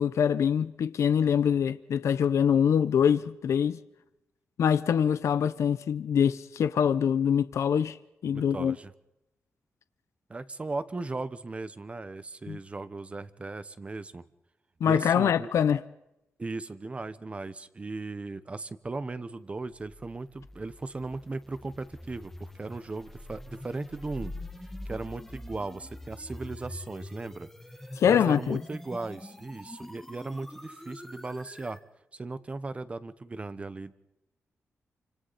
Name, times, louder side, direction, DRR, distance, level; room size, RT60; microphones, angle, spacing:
voice 1, 0.0-3.8 4.6-8.0 8.2-8.8 12.5-12.6 14.8-15.8 28.0-28.6, left 8 dB, 80° left, 0.8 m, -24 dB
voice 2, 8.3-8.9 10.3-14.2 14.8-15.5 16.4-24.3 24.8-27.5 28.0-31.8 32.1-33.9, right 3 dB, 25° right, 1.1 m, -37 dB
sound 1, 19.7-31.8, left 1 dB, 5° left, 1.5 m, -44 dB
29.0 x 26.0 x 4.2 m
wide cardioid pair, 135°, 5 cm